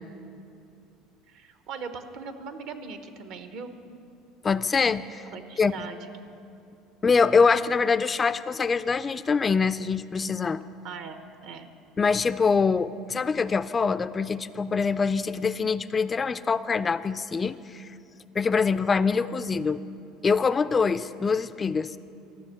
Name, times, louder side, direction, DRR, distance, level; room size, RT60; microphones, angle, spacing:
voice 1, 1.3-3.8 5.3-6.1 10.8-11.7, right 5 dB, 65° right, 8 dB, 0.9 m, -40 dB
voice 2, 4.4-5.2 5.6-5.7 7.0-10.6 12.0-17.9 18.4-19.8 20.2-22.0, left 5 dB, 25° left, 14 dB, 0.3 m, -24 dB
13.0 x 6.2 x 8.4 m, 2.6 s
supercardioid pair, 105°, 0 cm